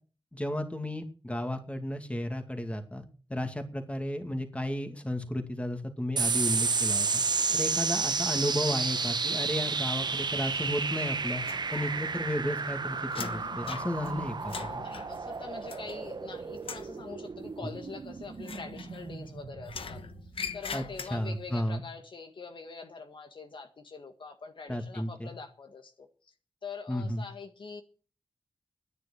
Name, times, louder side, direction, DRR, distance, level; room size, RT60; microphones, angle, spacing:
voice 1, 0.3-3.0 3.3-7.2 7.5-11.4 11.7-14.8 20.7-20.8 21.1-21.8 24.7-25.3 26.9-27.3, left 1 dB, 15° left, 2.3 m, -33 dB
sound 1, 6.2-21.0, right 4 dB, 50° right, 0.9 m, -32 dB
sound 2, 11.4-12.2 12.5-16.3 16.6-17.0 18.4-19.3 19.7-21.5, left 6 dB, 85° left, 1.1 m, -42 dB
voice 2, 14.4-20.0 20.5-26.1 26.6-27.8, left 4 dB, 65° left, 1.8 m, -44 dB
10.0 x 9.7 x 8.6 m
wide cardioid pair, 80°, 9 cm